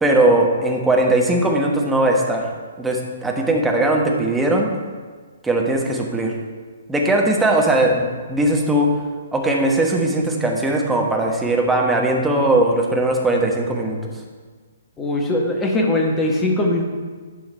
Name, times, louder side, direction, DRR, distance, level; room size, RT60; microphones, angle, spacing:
voice 1, 0.0-2.4 2.8-4.7 5.4-6.3 6.9-8.9 9.3-14.1, right 1 dB, 5° right, 0 dB, 1.2 m, -19 dB
voice 2, 15.0-16.8, left 1 dB, 15° left, 1 dB, 1.4 m, -20 dB
11.5 x 5.5 x 4.4 m, 1.5 s
figure-of-eight pair, 125°, 0 cm